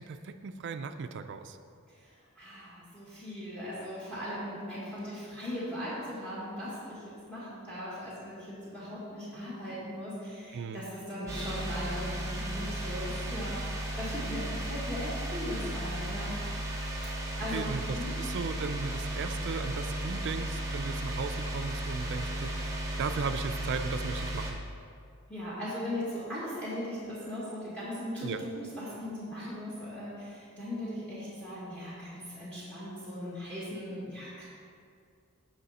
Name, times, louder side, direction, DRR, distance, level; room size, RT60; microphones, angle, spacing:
voice 1, 0.0-1.6 10.5-10.8 17.5-22.7 23.0-24.6 28.2-28.4, right 5 dB, 55° right, 9 dB, 0.4 m, -36 dB
voice 2, 2.3-16.3 17.4-18.1 25.3-34.4, equal, 5° left, -8 dB, 1.7 m, -38 dB
sound 1, 11.3-24.5, right 1 dB, 15° right, 1.1 m, -35 dB
9.3 x 5.7 x 4.2 m, 2.4 s
head